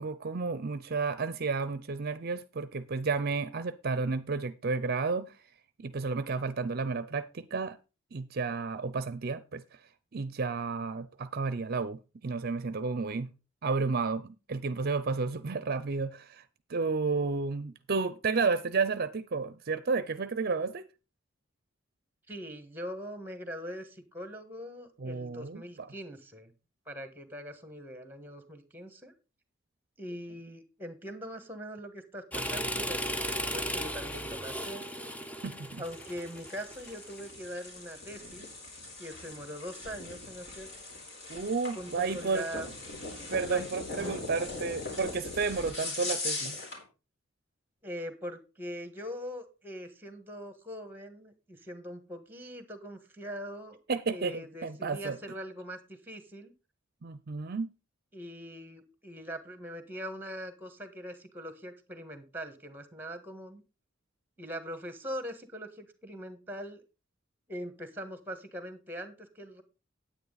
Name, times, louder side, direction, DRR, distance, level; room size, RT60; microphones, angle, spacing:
voice 1, 0.0-5.3 5.8-7.8 8.1-9.6 10.1-13.3 13.6-16.4 16.7-20.9 25.0-25.6 35.4-35.8 41.3-42.4 43.3-46.6 53.9-55.2 57.0-57.7, right 4 dB, 50° right, 0.5 m, -32 dB
voice 2, 22.3-26.5 26.9-29.1 30.0-34.9 35.8-38.5 39.0-40.7 41.7-42.7 43.5-43.6 43.9-44.1 47.8-53.8 54.1-56.5 58.1-63.6 64.4-66.8 67.5-69.6, equal, 10° right, 1.6 m, -42 dB
sound 1, 32.3-37.2, equal, 5° left, 0.7 m, -36 dB
sound 2, 35.8-46.8, left 2 dB, 60° left, 4.1 m, -40 dB
9.7 x 9.0 x 4.0 m
head